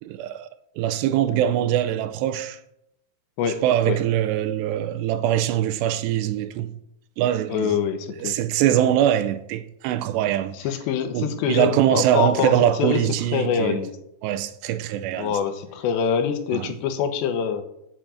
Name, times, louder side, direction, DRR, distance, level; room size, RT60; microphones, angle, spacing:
voice 1, 0.0-0.5 0.8-2.6 3.6-6.7 7.2-7.7 8.2-10.6 11.1-13.8 14.2-15.4 16.5-16.7, right 11 dB, 90° right, 2.8 m, -23 dB
voice 2, 3.4-4.0 7.5-8.4 10.5-12.5 12.8-13.0 13.3-13.9 15.2-17.6, left 7 dB, 85° left, 3.3 m, -25 dB
8.3 x 6.9 x 7.7 m
omnidirectional pair, 5.0 m